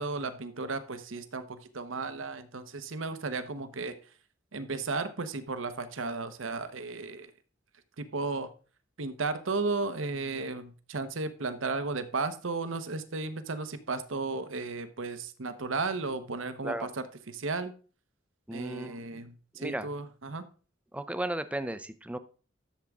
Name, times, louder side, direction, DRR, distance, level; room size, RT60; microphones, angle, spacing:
voice 1, 0.0-3.9 4.5-7.3 8.0-8.5 9.0-17.7 18.5-20.4, right 3 dB, 70° right, 11 dB, 1.0 m, -34 dB
voice 2, 18.5-19.2 19.6-19.9 20.9-22.2, right 1 dB, 5° right, 11 dB, 0.6 m, -35 dB
11.5 x 7.3 x 3.6 m, 0.38 s
head